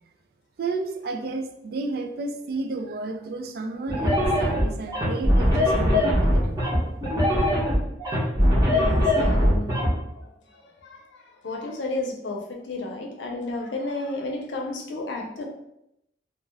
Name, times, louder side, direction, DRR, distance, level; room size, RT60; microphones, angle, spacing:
voice 1, 0.6-6.6, right 3 dB, 55° right, 6 dB, 0.3 m, -32 dB
sound 1, 3.9-9.9, equal, 20° right, 0.8 m, -21 dB
voice 2, 8.7-10.3 10.8-15.4, left 2 dB, 85° left, 1 dB, 0.6 m, -32 dB
2.4 x 2.2 x 3.2 m, 0.81 s
head